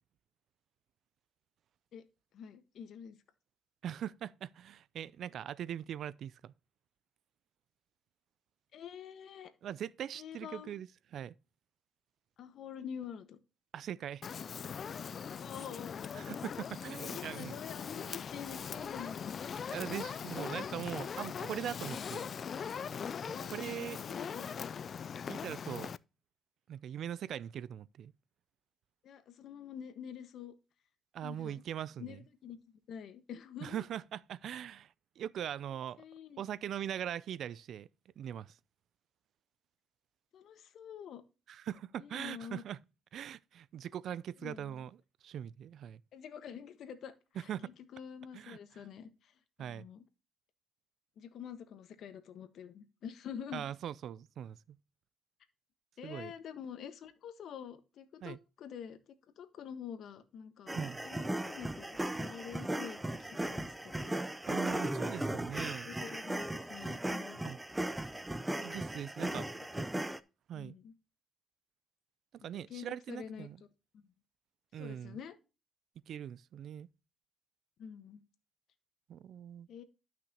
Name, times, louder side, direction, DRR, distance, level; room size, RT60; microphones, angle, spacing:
voice 1, 2.3-3.2 8.7-9.5 10.1-10.7 12.4-13.4 15.4-16.4 17.0-19.7 20.7-20.8 21.2-21.3 21.9-22.1 23.3-24.5 29.0-30.5 31.2-31.6 32.0-32.6 32.9-33.8 36.0-36.4 40.3-41.2 42.0-42.6 44.4-44.8 46.1-47.5 47.9-50.0 51.2-53.7 56.0-59.0 59.4-60.8 61.0-64.2 65.8-67.5 68.9-69.4 70.5-70.9 72.4-73.5 73.9-74.0 74.8-75.4 77.8-78.2 79.7-79.8, left 8 dB, 70° left, 1.3 m, -47 dB
voice 2, 3.8-6.5 9.6-10.9 11.1-11.3 13.7-14.4 16.1-17.6 19.7-22.3 23.4-24.0 25.3-25.9 26.7-28.1 31.1-32.2 33.6-36.0 36.4-37.9 38.2-38.6 41.5-42.8 43.1-45.0 45.2-46.0 47.4-47.7 48.3-48.6 49.6-49.9 53.5-54.8 56.0-56.3 58.2-58.4 60.7-61.0 64.5-65.9 67.4-67.6 68.6-69.5 70.5-70.8 72.3-73.6 74.7-75.2 76.1-76.9 79.1-79.7, right 10 dB, 70° right, 0.4 m, -41 dB
Fire, 14.2-26.0, left 7 dB, 50° left, 0.3 m, -41 dB
sound 1, 60.7-70.2, right 1 dB, 10° right, 0.7 m, -37 dB
12.0 x 5.9 x 2.9 m
cardioid pair, 90°, 0 cm